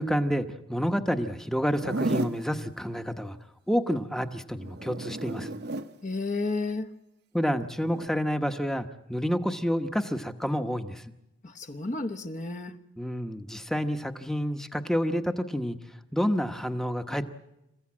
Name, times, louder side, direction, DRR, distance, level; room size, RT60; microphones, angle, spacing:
voice 1, 0.0-3.4 3.7-5.6 7.3-11.0 13.0-15.8 16.1-17.3, equal, ahead, 0.9 m, -29 dB
Zipper (clothing), 1.7-2.4 4.6-5.9 7.8-8.1, right 2 dB, 55° right, 0.8 m, -32 dB
voice 2, 6.0-6.9 11.4-12.8, left 3 dB, 40° left, 1.0 m, -32 dB
27.5 x 15.5 x 8.7 m
head